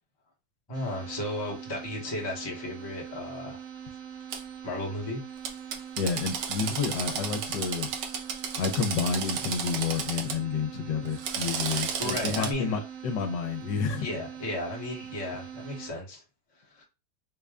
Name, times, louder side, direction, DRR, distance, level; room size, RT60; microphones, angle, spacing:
voice 1, 0.7-3.6 4.6-5.2 8.4-8.5 11.7-12.8 14.0-16.2 16.7-16.8, left 1 dB, 20° left, 0.8 m, -34 dB
sound 1, 0.7-15.9, right 8 dB, 55° right, 1.1 m, -43 dB
Drill, 4.3-4.4 5.4-10.4 11.1-12.5, right 6 dB, 75° right, 1.2 m, -33 dB
voice 2, 6.0-7.9 8.6-14.0, left 5 dB, 75° left, 1.3 m, -30 dB
3.9 x 2.2 x 3.5 m
omnidirectional pair, 2.0 m